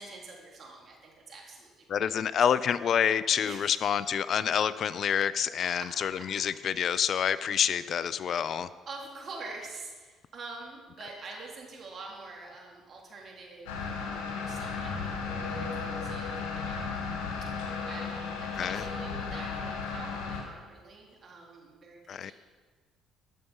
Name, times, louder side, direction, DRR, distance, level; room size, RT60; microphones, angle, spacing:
voice 1, 0.0-1.9 2.2-2.4 3.4-3.8 5.6-6.3 8.3-8.4 8.8-17.5 17.8-22.3, right 3 dB, 50° right, -2 dB, 3.2 m, -46 dB
voice 2, 1.9-8.7 18.6-18.8 22.1-22.3, left 8 dB, 55° left, 16 dB, 0.4 m, -27 dB
sound 1, 13.7-20.4, left 5 dB, 80° left, 1.7 m, -35 dB
12.5 x 6.6 x 5.5 m, 1.4 s
hypercardioid pair, 55°, 0 cm